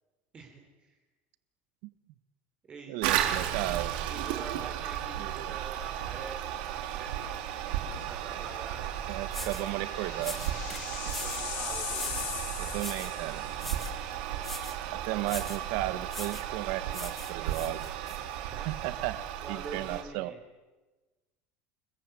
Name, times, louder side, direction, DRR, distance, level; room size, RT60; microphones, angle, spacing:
voice 1, 0.3-1.0 2.7-3.0 4.1-7.4 7.7-8.9 11.2-12.4 18.4-18.8 19.4-20.4, right 4 dB, 20° right, 2 dB, 3.7 m, -46 dB
voice 2, 2.9-3.9 5.2-5.6 9.1-10.4 12.6-13.4 14.9-17.9 18.6-20.3, right 16 dB, 60° right, 13 dB, 1.6 m, -35 dB
Toilet flush, 3.0-20.0, right 11 dB, 85° right, 4.1 m, -34 dB
sound 1, 6.8-7.2 7.5-7.6 9.0-13.7, left 10 dB, 70° left, 4.7 m, -40 dB
sound 2, 8.8-8.9 9.3-9.7 10.2-11.5 11.9-12.3 12.7-13.2 13.6-14.0 14.4-14.8 15.2-15.7 16.1-16.5 16.9-18.2, left 1 dB, 5° left, 1.6 m, -42 dB
30.0 x 21.5 x 9.3 m, 1.2 s
cardioid pair, 180°, 5 cm